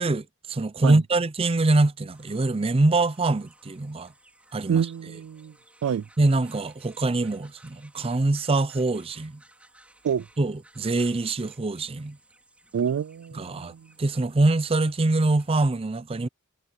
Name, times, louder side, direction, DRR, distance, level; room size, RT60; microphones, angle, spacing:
voice 1, 0.0-4.1 4.5-4.8 6.2-9.4 10.4-12.2 13.4-13.7 14.0-16.3, right 2 dB, 25° right, 0.5 m, -24 dB
sound 1, 2.1-15.7, right 1 dB, 5° right, 5.1 m, -58 dB
voice 2, 4.7-5.5 5.8-6.1 10.0-10.3 12.7-13.9, right 7 dB, 90° right, 0.3 m, -27 dB
head